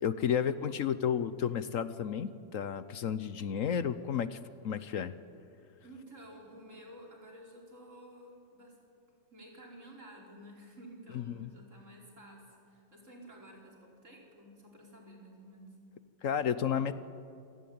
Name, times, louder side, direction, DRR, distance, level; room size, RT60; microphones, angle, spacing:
voice 1, 0.0-4.4 4.6-5.1 11.1-11.5 16.2-16.9, left 8 dB, 65° left, 14 dB, 1.1 m, -32 dB
voice 2, 5.8-8.8 9.3-15.7, right 1 dB, 55° right, -1 dB, 5.1 m, -52 dB
27.0 x 18.5 x 8.7 m, 2.4 s
omnidirectional pair, 1.5 m